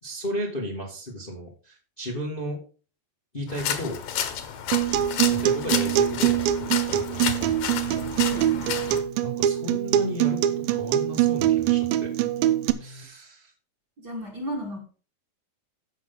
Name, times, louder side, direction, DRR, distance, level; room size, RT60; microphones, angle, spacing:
voice 1, 0.0-2.6 3.3-4.0 5.3-7.6 9.2-12.1 12.8-13.5, equal, 80° left, -2 dB, 0.4 m, -34 dB
sound 1, 3.5-9.0, left 8 dB, 65° left, 2.5 m, -31 dB
Acoustic guitar, 4.7-12.7, right 12 dB, 80° right, 2.1 m, -23 dB
sound 2, 7.6-13.0, left 2 dB, 45° left, 1.5 m, -45 dB
voice 2, 8.2-8.8 14.0-14.8, equal, 40° right, 1 dB, 1.6 m, -35 dB
15.5 x 5.7 x 3.8 m, 0.36 s
omnidirectional pair, 4.9 m